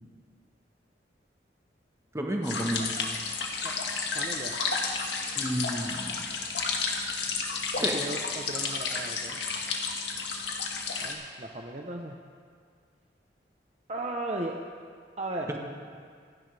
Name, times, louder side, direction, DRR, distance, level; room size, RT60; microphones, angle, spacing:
voice 1, 2.1-2.9 5.3-6.2 7.8-7.9 15.5-15.6, right 1 dB, 15° right, 1 dB, 1.3 m, -31 dB
sound 1, 2.4-11.1, left 4 dB, 75° left, 1.7 m, -32 dB
voice 2, 4.1-4.5 7.8-9.4 11.0-12.2 13.9-14.6 15.2-15.6, right 2 dB, 35° right, 1 dB, 0.8 m, -36 dB
26.5 x 11.0 x 3.4 m, 2.1 s
head